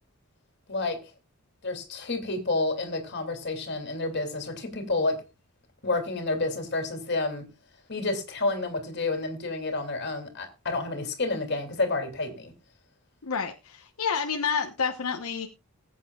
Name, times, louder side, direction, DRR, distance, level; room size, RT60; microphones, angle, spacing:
voice 1, 1.6-5.2 5.8-7.5 7.9-12.5, left 2 dB, 50° left, 2.7 m, -29 dB
voice 2, 13.2-15.5, left 6 dB, 75° left, 1.0 m, -29 dB
20.0 x 8.4 x 2.3 m
head